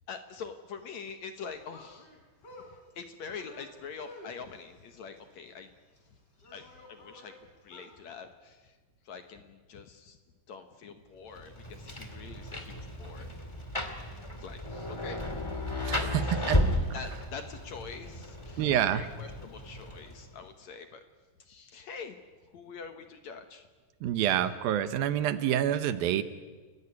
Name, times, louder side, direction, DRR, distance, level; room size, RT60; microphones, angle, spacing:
voice 1, 0.1-2.1 2.5-2.6 3.0-5.7 6.5-7.3 7.6-8.8 9.0-10.2 10.5-13.3 14.3-15.2 15.9-16.6 16.9-21.0 21.4-22.2 22.5-23.7 24.2-24.4, left 5 dB, 60° left, 7 dB, 2.1 m, -45 dB
sound 1, 1.5-8.0, left 1 dB, 25° left, 4.7 m, -52 dB
Rain, 11.3-20.4, left 1 dB, 10° left, 1.5 m, -34 dB
voice 2, 15.9-16.6 18.6-19.0 24.0-26.2, right 11 dB, 80° right, 11 dB, 2.8 m, -27 dB
30.0 x 16.5 x 9.7 m, 1.4 s
omnidirectional pair, 4.3 m